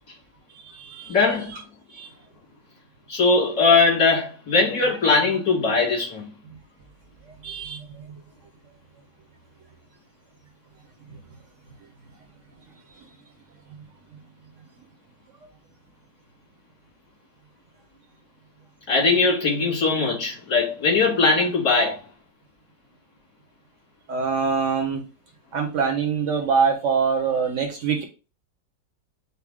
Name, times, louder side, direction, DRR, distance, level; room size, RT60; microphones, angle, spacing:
voice 1, 0.6-1.1 1.9-2.1 7.4-7.9 24.1-25.0 25.5-28.0, right 5 dB, 60° right, 0.9 m, -24 dB
voice 2, 1.1-1.5 3.1-6.2 18.9-22.0, left 4 dB, 70° left, 3.1 m, -20 dB
5.7 x 2.1 x 3.4 m
omnidirectional pair, 1.7 m